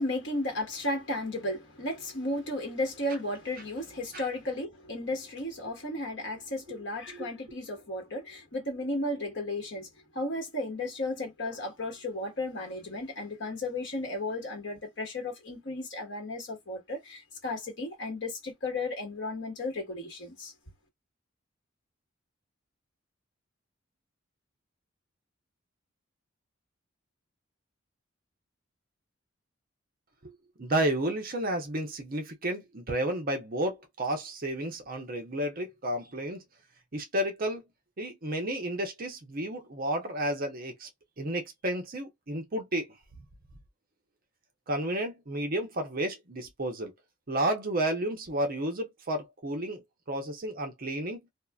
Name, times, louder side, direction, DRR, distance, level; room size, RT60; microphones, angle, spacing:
voice 1, 0.0-9.9 10.1-20.5, left 1 dB, 60° left, 1.2 m, -34 dB
voice 2, 30.6-36.4 36.9-37.6 38.0-40.9 41.2-42.9 44.7-46.9 47.3-49.8 50.1-51.2, right 1 dB, 45° right, 0.7 m, -31 dB
2.7 x 2.4 x 2.3 m
head